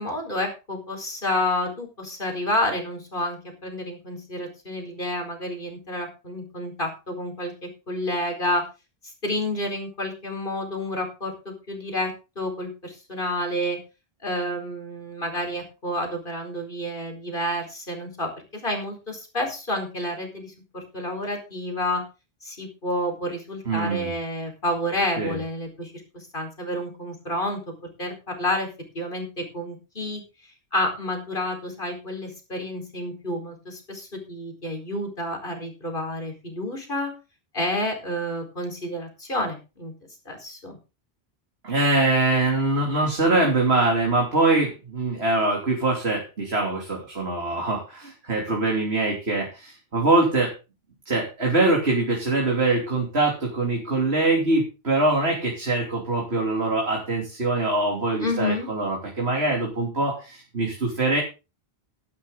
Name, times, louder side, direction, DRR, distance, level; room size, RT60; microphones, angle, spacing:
voice 1, 0.0-8.6 9.2-13.8 14.2-22.0 22.4-27.7 28.0-28.7 28.9-30.2 30.7-37.1 37.5-39.9 40.2-40.8 58.2-58.7, left 1 dB, 55° left, 3 dB, 4.9 m, -29 dB
voice 2, 23.7-24.1 25.2-25.4 41.6-50.5 51.1-61.2, right 2 dB, 85° right, 0 dB, 3.4 m, -23 dB
13.5 x 12.0 x 3.9 m, 0.30 s
omnidirectional pair, 1.0 m